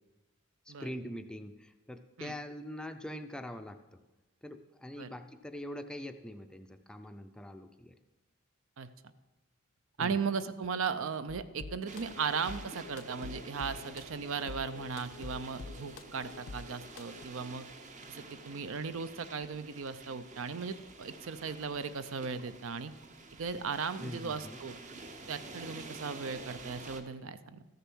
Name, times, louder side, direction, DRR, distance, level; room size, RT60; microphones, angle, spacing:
voice 1, 0.7-4.0 4.4-8.0 10.0-10.2 24.0-24.6, left 1 dB, 5° left, 7 dB, 0.4 m, -43 dB
voice 2, 10.0-17.7 18.1-22.9 23.4-24.8 25.3-27.6, right 5 dB, 70° right, 13 dB, 0.5 m, -37 dB
sound 1, 11.3-17.2, left 3 dB, 65° left, 0.6 m, -47 dB
sound 2, 11.9-27.0, right 3 dB, 35° right, 0.8 m, -49 dB
13.5 x 6.7 x 6.1 m, 1.1 s
head